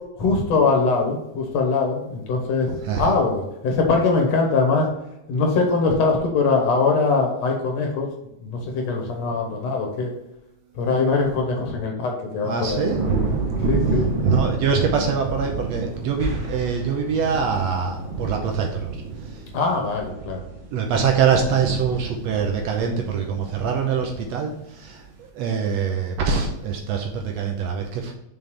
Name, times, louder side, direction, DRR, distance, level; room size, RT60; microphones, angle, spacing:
voice 1, 0.2-4.9 5.3-8.1 8.4-10.1 10.8-12.9 13.7-14.1 19.5-20.4, left 4 dB, 65° left, 1 dB, 2.3 m, -22 dB
voice 2, 2.8-3.2 12.4-13.0 13.3-13.5 14.2-19.5 20.7-28.1, right 6 dB, 75° right, 2 dB, 1.7 m, -24 dB
sound 1, 12.8-24.1 24.5-25.0, right 4 dB, 55° right, 1.5 m, -28 dB
sound 2, 16.2-17.8, equal, 40° right, 2.3 m, -33 dB
5.8 x 5.3 x 3.3 m, 0.88 s
omnidirectional pair, 3.4 m